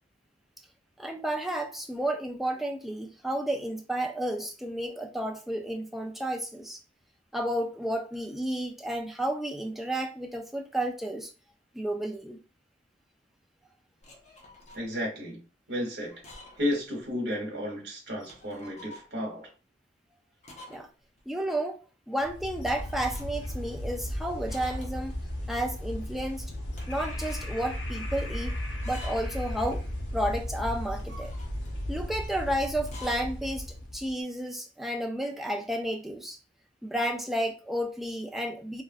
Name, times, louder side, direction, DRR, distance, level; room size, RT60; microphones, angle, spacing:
voice 1, 1.0-6.8 7.3-11.3 11.7-12.4 20.7-20.9 21.3-21.8 22.1-25.1 25.5-26.5 26.9-28.5 28.8-29.8 30.1-31.3 31.9-33.7 33.9-36.4 36.8-38.8, right 1 dB, ahead, 2 dB, 0.3 m, -32 dB
sound 1, 14.0-14.8 16.0-16.7 17.0-17.1 18.1-19.1 20.4-20.9 21.2-21.3 22.6-23.5 24.5-25.2 26.6-27.4 28.7-29.4 30.8-31.8 32.8-33.3, left 1 dB, 40° left, 0.7 m, -48 dB
voice 2, 14.7-15.4 15.7-16.1 16.6-19.5, left 1 dB, 65° right, 0 dB, 1.1 m, -32 dB
sound 2, 22.2-34.1, left 1 dB, 85° left, 0.8 m, -35 dB
3.2 x 2.4 x 2.5 m, 0.35 s
head